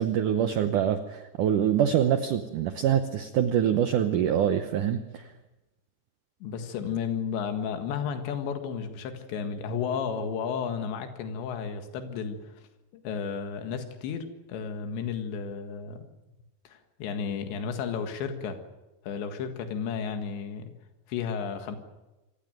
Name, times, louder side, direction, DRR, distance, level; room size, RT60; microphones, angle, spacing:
voice 1, 0.0-5.3, right 9 dB, 80° right, 9 dB, 1.8 m, -25 dB
voice 2, 6.4-12.6 12.9-16.0 16.7-18.6 19.0-20.7 21.1-21.8, left 6 dB, 85° left, 7 dB, 4.0 m, -33 dB
26.0 x 15.5 x 9.2 m, 1.0 s
omnidirectional pair, 5.0 m